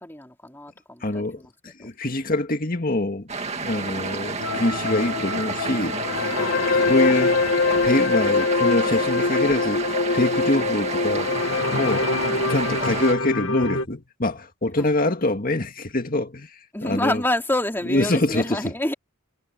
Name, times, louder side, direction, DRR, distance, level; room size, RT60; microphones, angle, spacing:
voice 1, 0.0-1.5 1.8-1.9 3.5-4.5 6.4-6.7 14.8-14.9 16.7-18.9, left 1 dB, 10° left, 3.1 m, -29 dB
voice 2, 1.0-6.0 6.9-9.8 10.1-12.1 12.4-17.2 17.9-18.7, left 1 dB, 40° left, 2.1 m, -25 dB
sound 1, 3.3-13.1, right 4 dB, 30° right, 2.3 m, -30 dB
sound 2, 4.4-13.8, left 3 dB, 75° left, 1.5 m, -24 dB
head